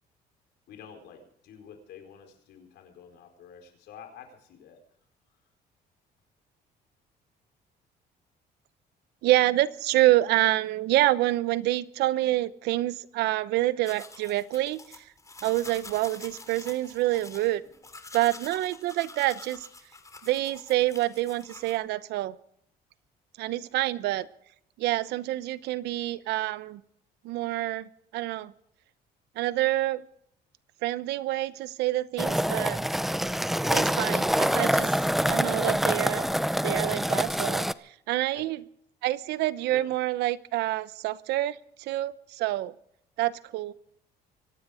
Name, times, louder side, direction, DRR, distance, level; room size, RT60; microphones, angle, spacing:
voice 1, 0.7-4.8 38.3-38.5 39.7-39.9, left 7 dB, 75° left, 5 dB, 4.4 m, -49 dB
voice 2, 9.2-15.0 15.4-17.6 18.1-19.7 20.2-22.4 23.4-24.3 24.8-26.8 27.2-28.5 29.4-30.0 30.8-32.8 33.7-34.9 35.3-36.3 36.6-38.6 39.0-42.8 43.2-43.7, right 16 dB, 85° right, 16 dB, 0.8 m, -27 dB
sound 1, 13.9-21.8, left 3 dB, 20° left, 3.2 m, -47 dB
sound 2, 32.2-37.7, equal, ahead, 0.6 m, -26 dB
25.0 x 10.5 x 5.0 m, 0.70 s
cardioid pair, 110°, 17 cm